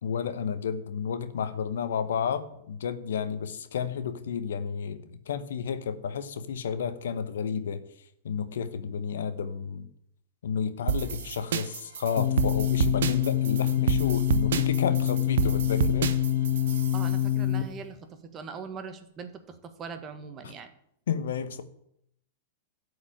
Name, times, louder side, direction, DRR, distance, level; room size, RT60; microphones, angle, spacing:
voice 1, 0.0-7.8 8.2-9.9 10.4-16.1 21.1-21.6, left 7 dB, 70° left, 11 dB, 1.0 m, -31 dB
sound 1, 10.9-17.2, right 8 dB, 70° right, 0.9 m, -29 dB
sound 2, 12.2-17.6, left 12 dB, 50° left, 1.6 m, -26 dB
voice 2, 16.9-20.7, right 6 dB, 30° right, 8 dB, 1.6 m, -41 dB
12.5 x 5.0 x 8.9 m, 0.72 s
hypercardioid pair, 105°, 0 cm